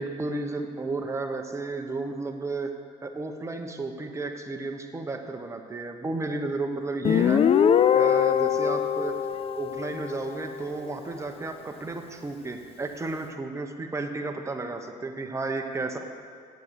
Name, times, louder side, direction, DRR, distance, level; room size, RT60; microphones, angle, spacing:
voice 1, 0.0-2.7 3.0-7.4 7.9-9.2 9.5-16.0, right 3 dB, 15° right, 4 dB, 0.9 m, -33 dB
Guitar, 7.0-10.5, left 8 dB, 35° left, 0.3 m, -22 dB
8.1 x 7.8 x 7.4 m, 2.1 s
cardioid pair, 110°, 17 cm